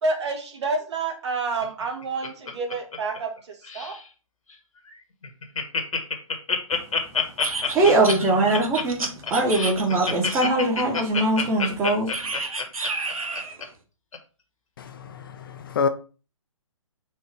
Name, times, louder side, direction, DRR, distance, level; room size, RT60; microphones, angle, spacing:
voice 1, 0.0-3.9, right 3 dB, 55° right, 1.3 m, -29 dB
Laughter, 1.6-3.4 3.6-4.0 4.5-4.6 4.9-5.0 5.2-13.6 14.1-14.2, left 5 dB, 75° left, 1.2 m, -27 dB
voice 2, 6.7-12.4, right 2 dB, 15° right, 1.0 m, -22 dB
sound 1, 7.4-10.7 12.1-13.6, right 3 dB, 90° right, 0.9 m, -31 dB
voice 3, 14.8-15.9, left 6 dB, 40° left, 0.4 m, -28 dB
4.4 x 2.5 x 4.8 m
hypercardioid pair, 145°, 18 cm